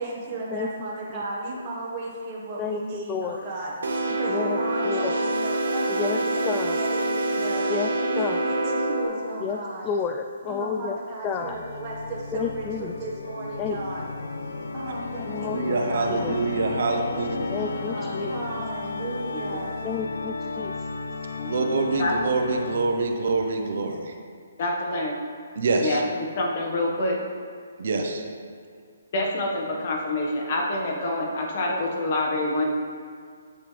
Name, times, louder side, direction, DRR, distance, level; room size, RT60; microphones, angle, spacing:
voice 1, 0.0-3.7 4.0-7.7 8.0-9.9 10.5-14.1 14.7-16.3 16.8-19.7, right 2 dB, 30° right, -5 dB, 1.6 m, -35 dB
voice 2, 0.5-1.2 2.6-3.4 4.3-5.1 5.9-6.2 6.4-6.8 7.7-7.9 8.2-8.4 9.4-11.0 11.2-11.6 12.3-12.9 13.6-13.8 15.3-16.3 17.5-18.3 19.8-20.9, left 6 dB, 20° left, 5 dB, 0.3 m, -31 dB
sound 1, 3.8-9.1, right 2 dB, 80° right, 1.8 m, -26 dB
Organ, 11.3-23.1, left 3 dB, 80° left, 0.6 m, -33 dB
voice 3, 15.5-17.3 21.5-24.2 25.6-26.0 27.8-28.2, right 3 dB, 60° right, 3 dB, 1.0 m, -25 dB
voice 4, 21.4-22.1 24.6-25.1 25.8-27.2 29.1-32.6, left 2 dB, 45° left, -1 dB, 1.6 m, -27 dB
8.6 x 8.5 x 3.4 m, 2.2 s
hypercardioid pair, 155°, 0 cm